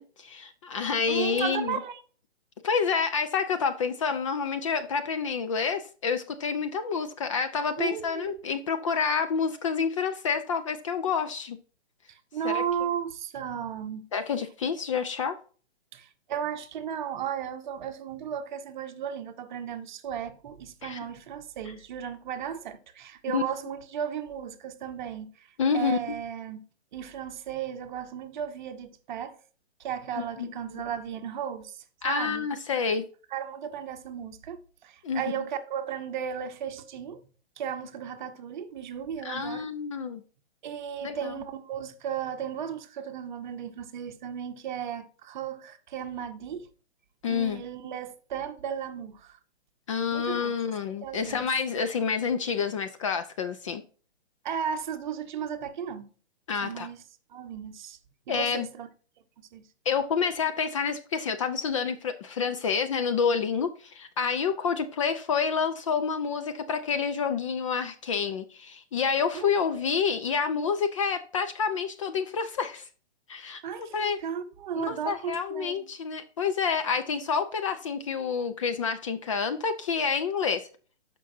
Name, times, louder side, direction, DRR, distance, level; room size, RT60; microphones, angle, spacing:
voice 1, 0.0-1.8 2.6-11.6 12.4-12.6 14.1-15.4 20.8-21.0 23.3-23.4 25.6-26.0 30.4-30.5 32.0-33.0 35.0-35.2 39.2-40.2 41.0-41.3 47.2-47.6 49.9-53.8 56.5-56.9 58.3-58.7 59.9-72.9 73.3-73.6 73.9-74.2 74.8-80.7, left 6 dB, 30° left, 0.4 m, -28 dB
voice 2, 1.1-2.0 7.8-8.4 12.1-14.0 15.9-26.6 26.9-29.4 29.8-32.5 33.3-37.3 37.6-39.7 40.6-46.7 47.3-49.4 50.1-50.6 50.9-51.5 54.4-56.1 56.6-57.0 57.3-58.0 58.3-58.9 59.5-59.6 69.3-69.8 73.6-75.9, right 8 dB, 45° right, 0.9 m, -35 dB
12.5 x 5.3 x 2.6 m
hypercardioid pair, 145°, 34 cm